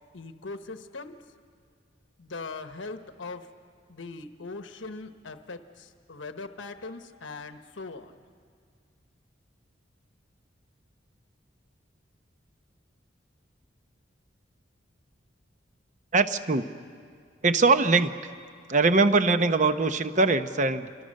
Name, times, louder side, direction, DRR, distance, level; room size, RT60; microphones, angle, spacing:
voice 1, 0.1-1.2 2.2-3.5 3.9-8.2, left 3 dB, 85° left, 8 dB, 1.1 m, -40 dB
voice 2, 16.1-16.7 17.4-18.4 18.7-20.9, right 3 dB, 40° right, 10 dB, 0.8 m, -22 dB
27.0 x 25.0 x 6.5 m, 2.2 s
head